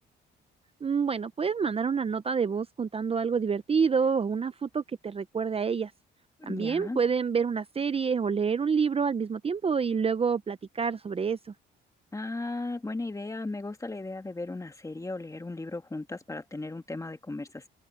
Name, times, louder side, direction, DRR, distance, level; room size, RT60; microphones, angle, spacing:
voice 1, 0.8-5.9 6.5-11.5, right 6 dB, 30° right, 0.7 m, -28 dB
voice 2, 6.4-7.0 12.1-17.7, left 2 dB, 15° left, 1.9 m, -36 dB
open air
cardioid pair, 90°, 20 cm